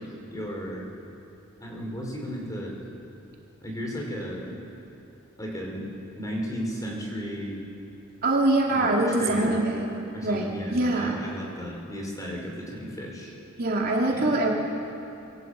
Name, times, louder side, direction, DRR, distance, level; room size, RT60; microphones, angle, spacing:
voice 1, 0.0-0.9 1.6-2.8 3.6-4.6 5.4-5.9 6.2-7.6 8.7-9.6 10.1-13.3 14.1-14.4, equal, 15° left, -1 dB, 5.3 m, -34 dB
voice 2, 8.2-9.8 10.2-11.2 13.6-14.5, right 2 dB, 45° right, -2 dB, 3.1 m, -24 dB
27.0 x 22.5 x 8.4 m, 2.8 s
head